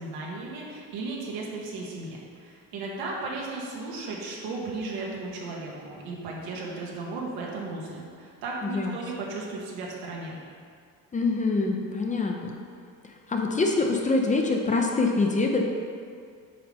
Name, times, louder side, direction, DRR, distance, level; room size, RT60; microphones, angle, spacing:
voice 1, 0.0-10.4, right 3 dB, 85° right, -3 dB, 1.7 m, -35 dB
voice 2, 8.6-8.9 11.1-12.6 13.3-15.6, left 3 dB, 20° left, 2 dB, 0.6 m, -25 dB
8.7 x 5.4 x 3.5 m, 2.2 s
cardioid pair, 140°, 36 cm